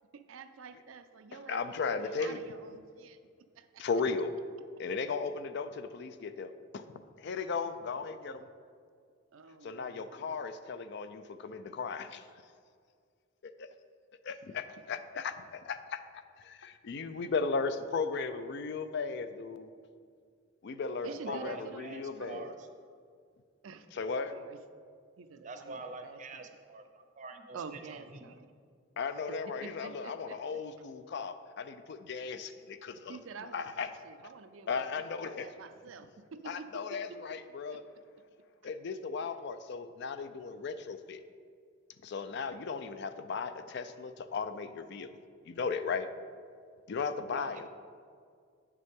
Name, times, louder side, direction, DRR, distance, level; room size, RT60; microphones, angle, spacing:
voice 1, 0.1-3.2 3.5-3.9 9.3-10.3 14.3-14.4 17.2-17.3 21.0-22.4 23.6-24.6 25.2-26.6 27.5-28.5 29.3-30.6 33.1-37.2 37.7-38.2 47.2-47.7, right 5 dB, 85° right, 9 dB, 0.5 m, -49 dB
voice 2, 1.5-2.4 3.8-4.3 4.8-8.5 9.6-12.2 13.4-13.7 14.2-16.0 16.4-19.7 20.6-22.5 23.9-24.3 29.0-33.2 33.5-33.9 34.7-35.5 36.5-37.8 38.6-41.2 42.0-45.1 45.5-46.1 46.9-47.7, left 5 dB, 60° left, 11 dB, 0.4 m, -36 dB
voice 3, 21.0-22.7 25.4-28.3 47.3-47.5, right 3 dB, 40° right, 7 dB, 0.6 m, -46 dB
8.6 x 6.6 x 3.6 m, 2.1 s
head